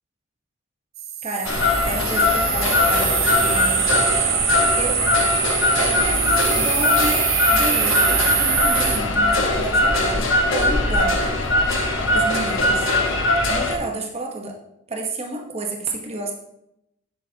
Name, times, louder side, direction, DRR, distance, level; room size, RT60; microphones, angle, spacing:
sound 1, 1.0-9.0, right 8 dB, 70° right, 1.2 m, -23 dB
voice 1, 1.2-3.8 4.8-5.0 5.8-11.2 12.1-12.9 13.5-14.6 14.9-16.3, right 2 dB, 30° right, 2 dB, 1.0 m, -30 dB
sound 2, 1.4-13.7, left 2 dB, 60° left, 1.3 m, -21 dB
9.2 x 8.5 x 2.8 m, 0.81 s
head